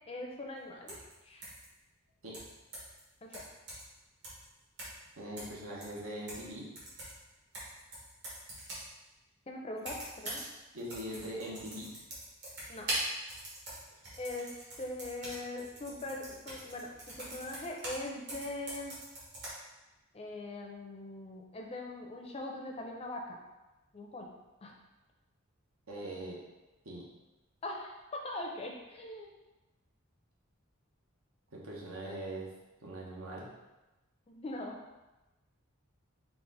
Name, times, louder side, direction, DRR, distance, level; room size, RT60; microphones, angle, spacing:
voice 1, 0.1-0.9 1.2-1.4 3.2-3.4 9.5-10.4 12.7-12.9 14.2-14.5 14.8-16.9 17.2-19.0 20.1-23.4 23.9-24.3 24.6-24.7 27.6-29.3 34.3-34.8, left 2 dB, 25° left, 1 dB, 0.4 m, -41 dB
sound 1, 0.9-1.1 1.4-1.7 2.3-3.0 3.3-4.0 4.2-4.4 4.8-5.1 5.4-6.5 6.8-8.9 9.8-10.5 10.8-18.0 18.3-19.5, right 1 dB, 55° right, 1.4 m, -43 dB
voice 2, 5.2-6.6 10.7-11.9 25.9-26.4 26.8-27.0 31.5-32.5 32.8-33.5, right 1 dB, 75° right, -4 dB, 1.0 m, -41 dB
4.1 x 2.4 x 3.8 m, 1.0 s
head